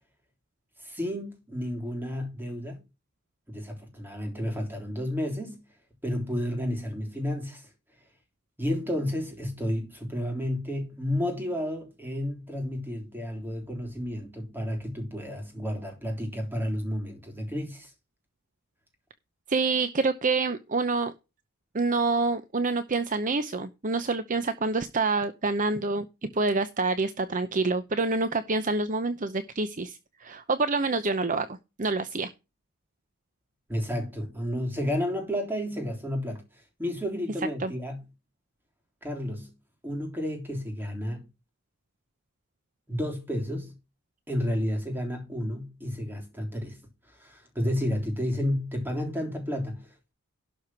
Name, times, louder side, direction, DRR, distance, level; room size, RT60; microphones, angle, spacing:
voice 1, 0.8-2.8 3.5-5.6 6.0-7.7 8.6-17.9 33.7-36.4 36.8-38.0 39.0-39.5 39.8-41.2 42.9-43.7 44.3-46.8 47.2-50.1, equal, 10° right, 3.4 m, -31 dB
voice 2, 19.5-21.1 21.7-31.5 31.8-32.3 37.6-37.7, right 3 dB, 35° right, 0.7 m, -27 dB
12.0 x 4.9 x 5.9 m
head